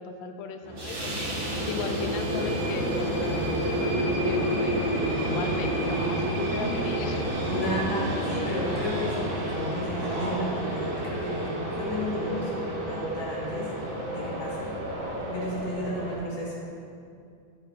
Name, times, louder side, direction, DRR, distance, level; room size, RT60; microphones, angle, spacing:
voice 1, 0.0-7.3, left 6 dB, 75° left, 6 dB, 1.3 m, -37 dB
sound 1, 0.6-16.2, right 1 dB, 30° right, 1.2 m, -29 dB
voice 2, 7.5-13.7 14.1-14.7 15.2-16.6, equal, 25° left, -6 dB, 1.5 m, -33 dB
9.4 x 6.7 x 2.8 m, 2.4 s
omnidirectional pair, 2.2 m